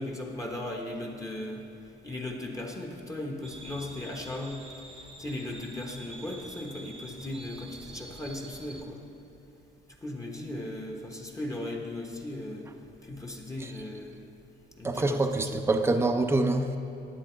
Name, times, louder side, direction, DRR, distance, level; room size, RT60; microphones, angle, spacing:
voice 1, 0.0-1.6 2.0-4.6 5.2-9.0 10.0-12.7 13.0-14.2 14.8-15.2 15.5-15.6, left 1 dB, 15° left, 0 dB, 1.1 m, -37 dB
sound 1, 3.4-8.8, right 1 dB, 30° right, 0.9 m, -47 dB
voice 2, 14.8-16.8, right 2 dB, 10° right, 6 dB, 0.6 m, -26 dB
10.5 x 8.8 x 4.5 m, 2.8 s
cardioid pair, 90°, 20 cm